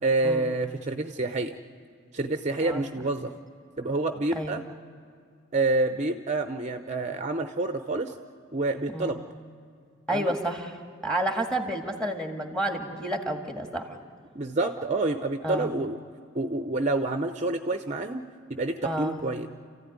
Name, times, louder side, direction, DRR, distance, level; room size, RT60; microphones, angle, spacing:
voice 1, 0.0-1.6 2.1-3.3 3.8-4.6 5.5-8.1 8.5-9.2 10.1-10.3 14.3-16.0 16.3-18.2 18.5-19.5, right 2 dB, 35° right, 7 dB, 0.7 m, -28 dB
voice 2, 10.1-10.7 11.0-14.0 15.4-15.7 18.8-19.2, right 1 dB, 5° left, 4 dB, 1.9 m, -30 dB
29.0 x 15.0 x 9.5 m, 2.3 s
head